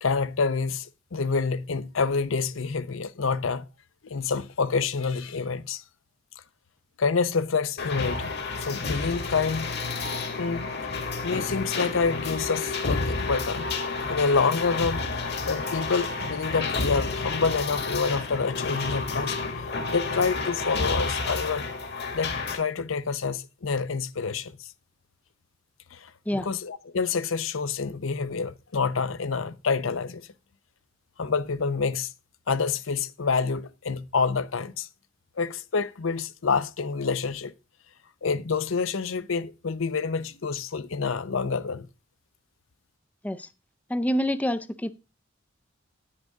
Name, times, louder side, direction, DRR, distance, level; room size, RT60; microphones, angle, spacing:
voice 1, 0.0-3.7 4.0-5.8 7.0-9.7 10.3-10.7 11.2-13.7 14.1-15.0 15.4-19.4 19.9-21.6 22.1-24.7 25.9-30.3 31.2-32.1 32.5-34.9 35.4-37.5 38.2-41.9, left 5 dB, 80° left, 0.7 m, -27 dB
sound 1, 7.8-22.6, left 3 dB, 55° left, 2.0 m, -30 dB
voice 2, 43.9-44.9, equal, 10° left, 0.4 m, -27 dB
9.8 x 9.4 x 3.6 m
head